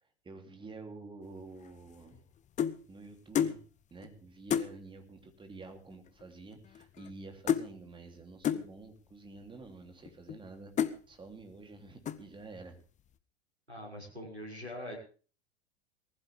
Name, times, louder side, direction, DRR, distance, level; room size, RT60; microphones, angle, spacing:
voice 1, 0.2-2.2 2.9-3.6 3.9-10.7 11.1-12.8, right 3 dB, 15° right, 5 dB, 3.2 m, -49 dB
sound 1, 1.6-2.8 3.3-3.6 4.0-4.1 4.5-4.7 5.6-5.7 5.9-6.3 6.5-7.2 7.5-7.7 8.4-8.7 9.4-9.5 10.1-10.4 10.8-11.0 11.5-11.8 12.1-12.4, left 9 dB, 20° left, 1.0 m, -31 dB
voice 2, 13.7-15.0, left 1 dB, 90° right, 2 dB, 6.0 m, -43 dB
19.5 x 15.0 x 3.5 m, 0.38 s
figure-of-eight pair, 90°, 32 cm